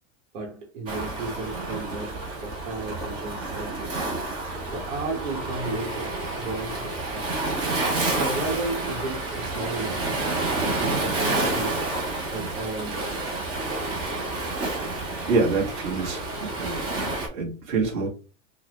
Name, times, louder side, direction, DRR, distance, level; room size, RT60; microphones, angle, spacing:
voice 1, 0.3-4.1 4.7-7.5 8.1-10.5 10.7-13.5, right 3 dB, 70° right, 1.1 m, -34 dB
Waves surf, 0.9-17.3, right 2 dB, 15° right, 0.3 m, -29 dB
voice 2, 15.3-16.8 17.3-18.1, right 4 dB, 40° right, 1.4 m, -26 dB
3.7 x 2.1 x 2.9 m
supercardioid pair, 165°, 37 cm